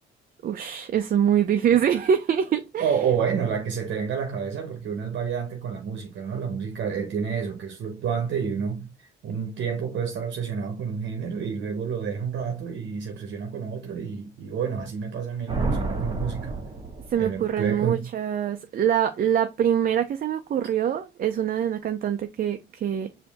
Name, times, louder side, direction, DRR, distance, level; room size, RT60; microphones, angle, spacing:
voice 1, 0.4-2.9 17.1-23.1, right 9 dB, 45° right, 0.5 m, -24 dB
voice 2, 2.8-16.6 17.2-18.1, right 6 dB, 65° right, 0.9 m, -29 dB
sound 1, 15.5-17.5, right 3 dB, 30° right, 1.8 m, -29 dB
5.0 x 2.7 x 3.4 m
cardioid pair, 90°, 20 cm